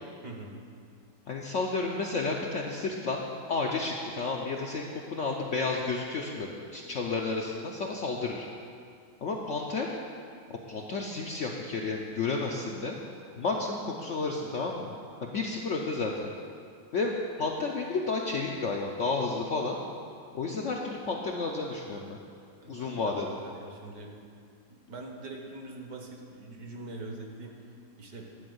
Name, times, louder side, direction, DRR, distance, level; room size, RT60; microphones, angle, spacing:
voice 1, 0.2-0.6 22.6-23.1 23.4-24.1 24.7-27.5 28.0-28.3, right 2 dB, 60° right, 1 dB, 1.5 m, -43 dB
voice 2, 1.3-3.2 3.5-8.5 9.2-9.9 10.5-13.0 13.4-14.9 15.2-16.3 16.9-19.8 20.3-22.2 22.7-23.4, left 3 dB, 65° left, 0 dB, 0.8 m, -31 dB
10.5 x 4.4 x 7.8 m, 2.3 s
omnidirectional pair, 1.9 m